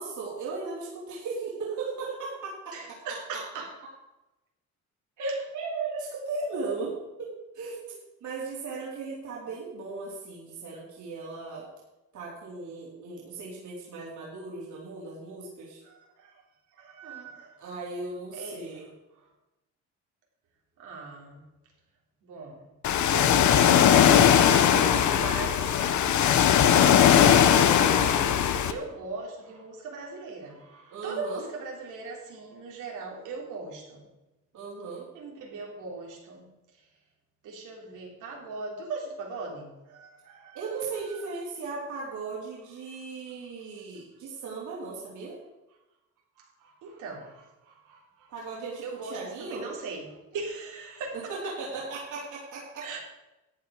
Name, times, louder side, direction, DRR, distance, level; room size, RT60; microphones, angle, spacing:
voice 1, 0.0-3.0 5.2-7.3 7.5-11.7 12.1-15.8 17.6-18.9 24.6-25.2 30.9-31.4 34.5-35.1 40.5-45.4 48.3-49.7 51.1-52.9, right 4 dB, 75° right, -5 dB, 4.0 m, -37 dB
voice 2, 2.7-3.7 5.2-5.5 15.8-16.4 16.7-17.6 18.3-18.9 19.2-19.3 20.8-21.4 22.2-22.7 23.1-34.1 35.1-36.5 36.7-36.9 37.4-40.7 41.1-41.2 42.9-43.0 46.4-48.3 48.8-51.2 52.8-53.0, right 3 dB, 90° right, -1 dB, 3.6 m, -40 dB
Ocean, 22.8-28.7, left 9 dB, 70° left, 1.0 m, -19 dB
14.0 x 8.8 x 5.0 m, 1.0 s
cardioid pair, 90°, 30 cm